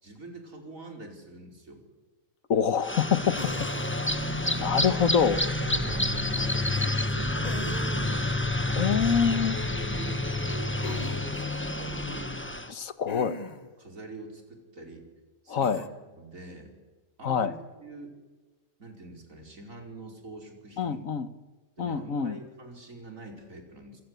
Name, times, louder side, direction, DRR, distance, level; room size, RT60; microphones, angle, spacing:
voice 1, 0.0-1.9 4.3-4.9 5.7-8.4 9.7-12.5 13.8-15.1 15.4-15.9 16.1-16.7 17.2-18.1 18.8-21.0 21.8-24.0, right 2 dB, 85° right, 3 dB, 5.5 m, -45 dB
voice 2, 2.5-4.1 4.6-5.4 8.7-9.6 12.7-13.4 15.5-15.8 17.2-17.5 20.8-21.3 21.8-22.4, left 7 dB, 90° left, 13 dB, 1.7 m, -26 dB
sound 1, 2.8-12.7, left 2 dB, 10° left, 1.5 m, -29 dB
sound 2, 3.4-4.1 7.4-8.2 10.8-11.2 13.1-13.7 15.6-15.9, left 2 dB, 30° left, 1.3 m, -40 dB
27.0 x 26.0 x 8.3 m, 1.2 s
omnidirectional pair, 1.4 m